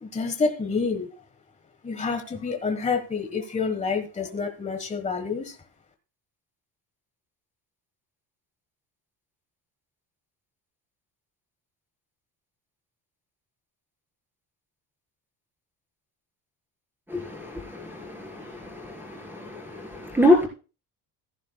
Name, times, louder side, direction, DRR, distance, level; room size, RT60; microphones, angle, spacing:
voice 1, 0.0-1.1 1.8-5.5, left 4 dB, 15° left, 1.3 m, -28 dB
voice 2, 17.1-20.5, left 1 dB, 5° right, 3.9 m, -25 dB
15.5 x 10.5 x 2.2 m
cardioid pair, 160°, 41 cm